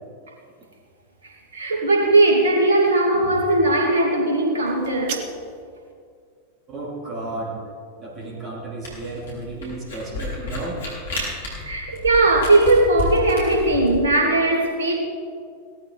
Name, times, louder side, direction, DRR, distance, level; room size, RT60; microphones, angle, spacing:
voice 1, 1.2-5.3 11.6-15.0, right 2 dB, 65° right, 0 dB, 2.8 m, -19 dB
sound 1, 4.6-5.7, right 8 dB, 50° right, 1.2 m, -35 dB
voice 2, 6.7-7.6 8.0-10.8, right 2 dB, 30° right, -3 dB, 3.9 m, -32 dB
Camera, 8.8-14.0, left 2 dB, 65° left, 4.5 m, -31 dB
17.5 x 13.0 x 4.3 m, 2.2 s
figure-of-eight pair, 90°, 0 cm